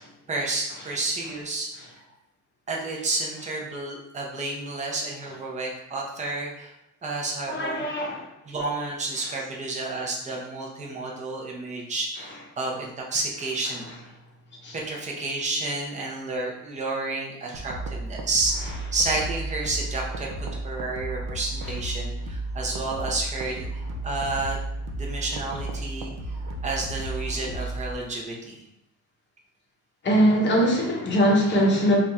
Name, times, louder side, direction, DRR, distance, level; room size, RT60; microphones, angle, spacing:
voice 1, 0.3-2.0 2.7-6.7 7.0-7.9 8.4-13.9 14.7-23.7 24.0-26.1 26.6-28.6, right 2 dB, 20° right, -2 dB, 0.6 m, -30 dB
voice 2, 7.5-8.2 14.6-14.7 30.0-32.0, equal, 35° left, -1 dB, 0.8 m, -21 dB
sound 1, 17.5-27.9, right 2 dB, 70° right, 0.7 m, -33 dB
3.3 x 2.4 x 4.1 m, 0.83 s
cardioid pair, 175°, 34 cm